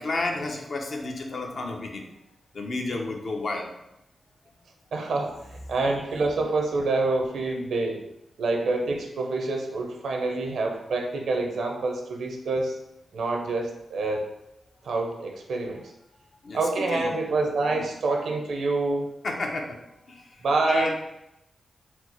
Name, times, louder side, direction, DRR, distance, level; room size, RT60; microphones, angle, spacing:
voice 1, 0.0-2.0 2.5-3.7 16.4-16.6 16.9-17.1 17.7-17.9 19.2-19.8 20.1-20.9, left 2 dB, 65° left, 1 dB, 0.8 m, -31 dB
voice 2, 4.9-8.1 8.4-12.8 13.1-14.3 14.8-15.9 16.5-19.1 20.4-20.9, right 3 dB, 85° right, 2 dB, 0.7 m, -27 dB
4.3 x 2.0 x 4.4 m, 0.85 s
cardioid pair, 55°, 0 cm